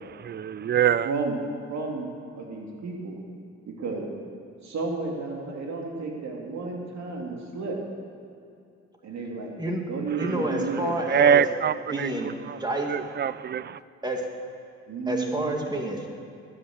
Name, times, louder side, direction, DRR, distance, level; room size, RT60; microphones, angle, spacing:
voice 1, 0.1-1.1 10.2-10.3 11.1-12.1 12.5-12.6 12.9-13.8, right 8 dB, 35° right, 0.4 m, -24 dB
voice 2, 1.0-1.4 1.7-2.1 2.3-3.2 3.7-4.1 4.6-7.8 9.0-9.5 9.9-10.9 14.9-15.6, right 4 dB, 65° right, 3.0 m, -32 dB
voice 3, 10.2-11.5 11.9-12.3 12.6-12.9 14.0-14.2 15.1-16.1, right 1 dB, 15° right, 2.2 m, -28 dB
13.0 x 8.7 x 7.9 m
cardioid pair, 90°, 30 cm